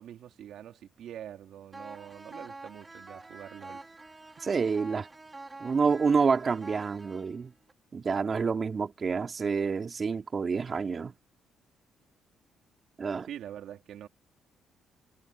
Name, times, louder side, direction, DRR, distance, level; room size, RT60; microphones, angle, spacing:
voice 1, 0.0-3.8 13.2-14.1, right 10 dB, 75° right, 3.5 m, -45 dB
sound 1, 1.7-7.7, right 2 dB, 20° right, 3.4 m, -47 dB
voice 2, 4.4-5.1 5.6-7.5 7.9-11.1 13.0-13.3, right 5 dB, 40° right, 2.6 m, -28 dB
cardioid pair, 90°, 0 cm